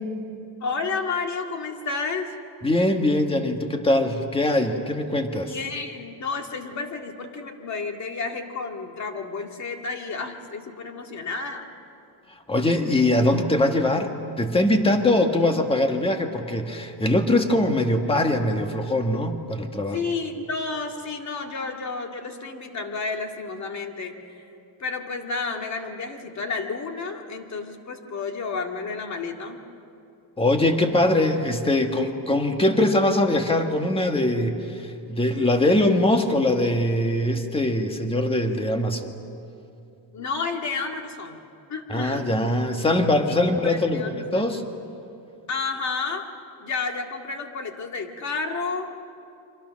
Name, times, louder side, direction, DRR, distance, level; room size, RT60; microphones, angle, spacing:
voice 1, 0.6-2.4 5.4-11.7 19.9-24.5 24.8-29.6 40.1-41.4 41.7-42.3 43.6-44.5 45.5-46.3 46.6-49.0, left 4 dB, 35° left, 4 dB, 2.1 m, -31 dB
voice 2, 2.6-5.5 12.5-20.0 30.4-39.1 41.9-44.6, left 1 dB, 10° left, 5 dB, 1.5 m, -22 dB
29.5 x 24.5 x 6.4 m, 2.6 s
cardioid pair, 150°, 49 cm